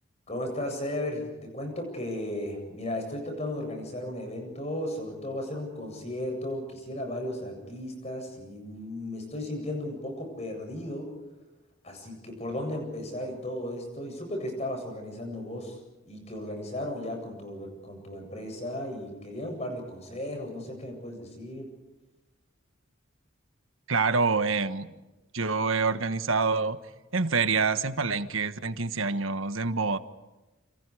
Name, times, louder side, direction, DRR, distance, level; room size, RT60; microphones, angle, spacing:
voice 1, 0.3-11.1 11.8-15.8 16.1-21.7, left 1 dB, 30° left, 4 dB, 7.9 m, -35 dB
voice 2, 23.9-24.9 25.3-26.8 27.1-30.0, right 4 dB, 80° right, 11 dB, 1.4 m, -26 dB
29.5 x 27.5 x 5.0 m, 1.1 s
head